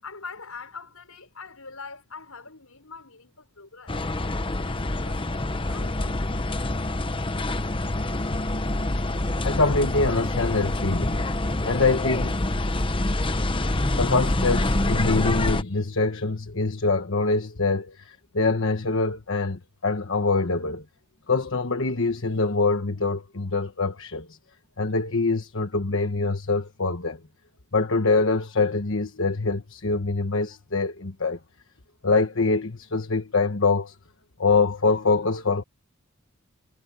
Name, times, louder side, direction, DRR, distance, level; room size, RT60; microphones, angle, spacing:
voice 1, 0.0-4.0 4.4-6.3, left 4 dB, 85° left, 6.2 m, -43 dB
sound 1, 3.9-15.6, left 2 dB, 25° left, 0.9 m, -26 dB
voice 2, 9.4-11.3 11.6-12.4 13.5-20.8 21.3-24.4 24.8-27.2 27.7-31.4 32.0-33.9 34.4-35.6, left 3 dB, 60° left, 1.4 m, -24 dB
head